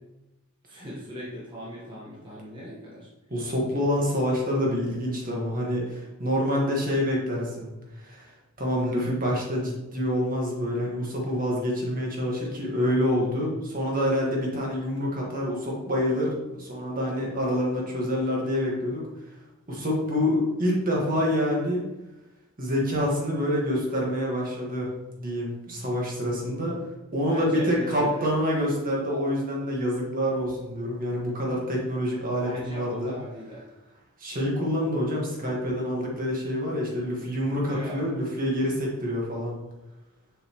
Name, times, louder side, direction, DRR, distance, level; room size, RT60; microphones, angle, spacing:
voice 1, 0.6-3.1 27.3-28.3 32.4-33.6 37.6-38.0, equal, 25° right, -7 dB, 1.3 m, -38 dB
voice 2, 3.3-7.7 8.0-8.3 8.6-19.1 19.7-21.8 22.6-24.9 25.2-26.8 27.1-33.1 34.2-39.6, equal, 40° right, -2 dB, 1.6 m, -27 dB
6.9 x 5.5 x 3.0 m, 1.0 s
head